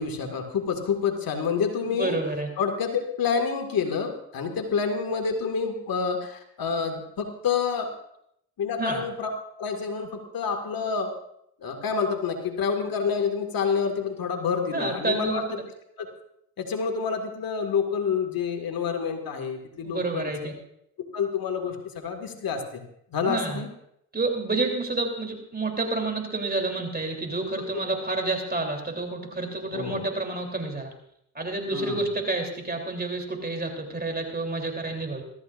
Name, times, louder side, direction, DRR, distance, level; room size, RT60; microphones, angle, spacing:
voice 1, 0.0-2.2 2.6-7.9 8.6-9.3 9.6-11.1 11.6-15.5 16.0-16.1 16.6-20.5 21.1-22.8 23.1-23.7 27.7-27.9 29.7-30.1 31.7-32.0, left 6 dB, 60° left, 4 dB, 2.2 m, -28 dB
voice 2, 1.9-2.5 8.8-9.0 14.7-15.6 19.8-20.5 23.2-23.6 24.1-30.9 31.4-35.2, right 3 dB, 25° right, 2 dB, 3.4 m, -29 dB
23.5 x 13.5 x 2.6 m, 0.74 s
supercardioid pair, 60°, 40 cm